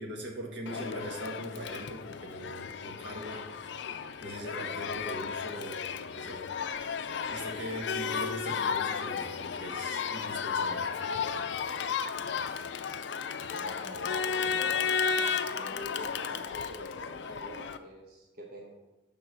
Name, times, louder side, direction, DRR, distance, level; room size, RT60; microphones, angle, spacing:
voice 1, 0.0-3.4 4.2-6.5 7.3-10.8, equal, 80° right, 0 dB, 1.3 m, -41 dB
Crowd, 0.6-17.8, left 6 dB, 75° left, 0.4 m, -34 dB
voice 2, 13.5-14.8 15.5-18.7, equal, 55° right, -2 dB, 1.1 m, -46 dB
6.5 x 3.7 x 6.0 m, 1.0 s
head